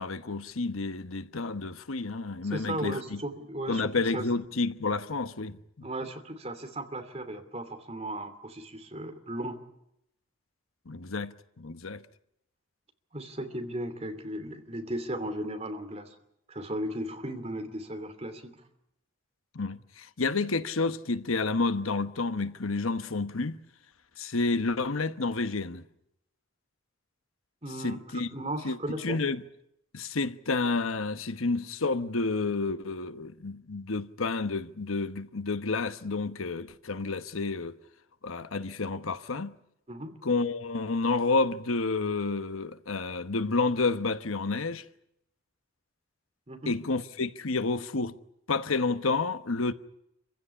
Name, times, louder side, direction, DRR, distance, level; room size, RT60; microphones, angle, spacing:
voice 1, 0.0-3.2 3.7-5.6 10.9-12.0 19.5-23.6 24.2-25.8 27.8-28.3 28.6-29.4 29.9-37.8 38.2-39.5 40.2-44.8 46.6-48.1 48.5-49.7, left 3 dB, 90° left, 1.1 m, -30 dB
voice 2, 2.5-4.2 5.8-9.6 13.1-16.1 16.5-18.6 27.6-29.2 39.9-40.1 46.5-46.7, right 1 dB, 30° right, 2.7 m, -36 dB
26.5 x 16.0 x 9.9 m
head